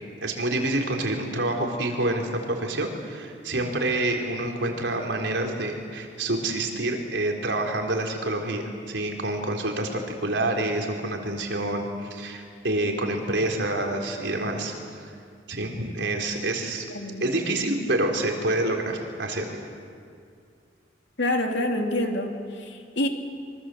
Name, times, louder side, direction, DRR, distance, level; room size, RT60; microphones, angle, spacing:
voice 1, 0.2-15.1 15.5-16.8 17.2-19.6, right 2 dB, 70° right, 2 dB, 4.0 m, -27 dB
voice 2, 21.2-23.1, left 1 dB, 70° left, 3 dB, 2.9 m, -27 dB
25.5 x 24.0 x 7.9 m, 2.3 s
head